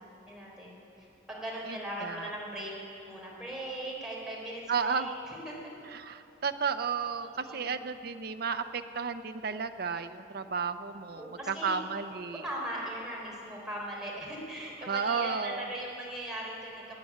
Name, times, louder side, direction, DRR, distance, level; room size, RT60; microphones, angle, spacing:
voice 1, 0.0-2.7 3.0-5.5 7.2-7.8 11.1-11.8 12.4-17.0, right 1 dB, 5° right, -5 dB, 3.7 m, -39 dB
voice 2, 1.7-2.3 4.7-5.1 5.9-12.4 14.8-15.7, right 5 dB, 55° right, 9 dB, 0.7 m, -33 dB
14.5 x 9.2 x 9.7 m, 2.9 s
head